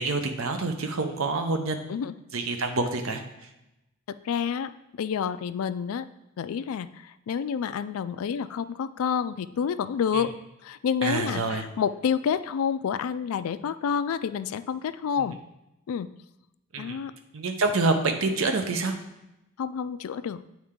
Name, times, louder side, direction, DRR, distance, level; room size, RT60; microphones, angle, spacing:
voice 1, 0.0-1.8 2.3-3.2 10.1-10.2 11.0-11.6 15.2-15.3 16.7-17.0 17.3-19.0, right 3 dB, 70° right, 6 dB, 0.7 m, -27 dB
voice 2, 4.1-4.7 5.0-6.1 6.4-10.3 10.6-15.4 15.9-16.1 16.8-17.1 19.6-20.4, left 7 dB, 75° left, 14 dB, 0.3 m, -29 dB
8.4 x 4.3 x 3.7 m, 0.91 s
head